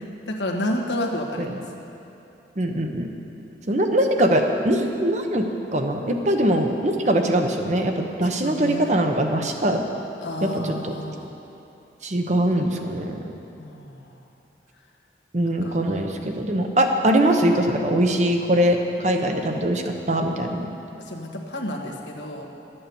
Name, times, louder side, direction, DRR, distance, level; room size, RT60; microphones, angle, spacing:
voice 1, 0.0-1.6 8.4-8.9 10.2-11.3 13.6-14.1 15.4-15.8 21.0-22.5, left 1 dB, 85° left, 0 dB, 1.5 m, -30 dB
voice 2, 2.6-3.1 3.7-5.5 5.7-9.8 10.4-10.9 12.0-13.2 15.3-20.7, right 1 dB, 40° right, 4 dB, 0.9 m, -22 dB
12.0 x 8.7 x 7.0 m, 2.9 s
head